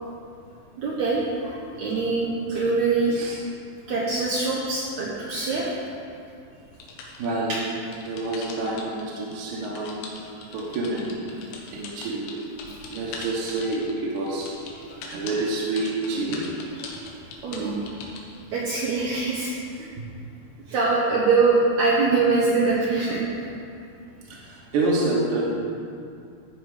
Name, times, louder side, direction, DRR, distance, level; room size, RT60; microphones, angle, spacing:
voice 1, 0.8-3.2 3.9-5.7 14.9-15.0 16.3-16.4 16.8-17.0 17.4-17.8 18.5-19.5 20.7-23.5, right 3 dB, 85° right, -4 dB, 1.6 m, -23 dB
sound 1, 6.8-9.0 9.3-18.6, left 4 dB, 80° left, 3.0 m, -40 dB
voice 2, 7.2-7.6 8.0-11.2 11.7-12.3 12.9-14.5 15.1-16.4 20.0-20.1 24.3-25.5, right 2 dB, 65° right, -5 dB, 2.1 m, -28 dB
13.0 x 4.7 x 4.9 m, 2.5 s
omnidirectional pair, 4.6 m